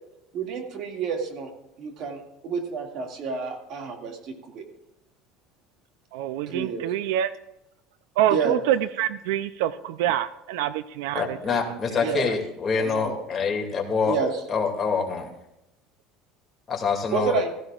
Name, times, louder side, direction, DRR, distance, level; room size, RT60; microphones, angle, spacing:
voice 1, 0.3-1.5 1.8-4.6 6.5-6.8 8.3-8.6 12.0-12.3 12.8-13.2 14.1-14.3 17.1-17.5, right 5 dB, 55° right, 3 dB, 2.2 m, -29 dB
voice 2, 6.1-7.3 8.2-12.1, right 11 dB, 85° right, 14 dB, 0.5 m, -26 dB
voice 3, 11.1-14.2 14.5-15.3 16.7-17.3, left 5 dB, 25° left, 1 dB, 2.4 m, -26 dB
15.0 x 15.0 x 2.5 m, 0.89 s
supercardioid pair, 125°, 0 cm